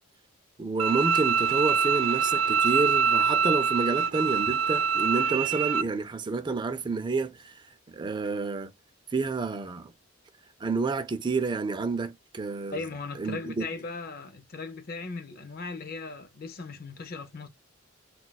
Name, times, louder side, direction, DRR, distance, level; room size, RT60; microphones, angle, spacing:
voice 1, 0.6-8.7 9.1-9.9 10.6-12.8 13.2-13.6, right 4 dB, 20° right, 0.4 m, -29 dB
Bowed string instrument, 0.8-5.8, right 6 dB, 85° right, 0.5 m, -24 dB
voice 2, 12.7-17.5, left 3 dB, 45° left, 0.5 m, -38 dB
2.3 x 2.3 x 3.9 m
head